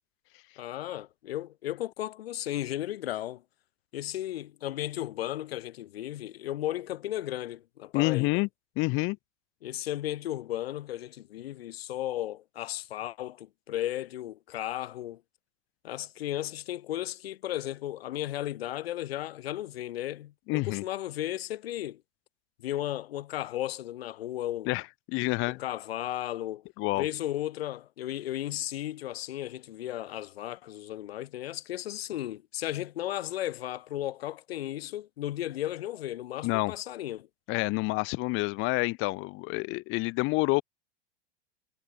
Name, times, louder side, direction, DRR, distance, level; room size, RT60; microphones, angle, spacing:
voice 1, 0.6-3.4 3.9-8.4 9.6-15.2 15.8-22.0 22.6-24.7 25.5-26.6 26.9-37.3, left 13 dB, 75° left, 1.2 m, -35 dB
voice 2, 7.9-8.5 8.8-9.2 20.5-20.8 24.7-24.8 25.1-25.6 26.8-27.1 36.4-36.7 37.5-40.6, left 26 dB, 40° left, 0.7 m, -28 dB
hypercardioid pair, 105°, 30 cm